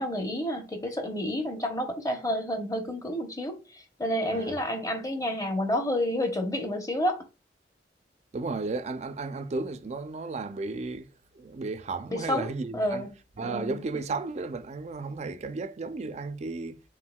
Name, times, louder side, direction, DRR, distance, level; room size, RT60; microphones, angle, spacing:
voice 1, 0.0-3.6 4.0-7.2 12.1-13.1 13.4-13.8, left 1 dB, 20° left, 0.8 m, -29 dB
voice 2, 8.3-13.1 13.4-16.8, right 3 dB, 40° right, 0.4 m, -34 dB
4.5 x 3.8 x 2.2 m
head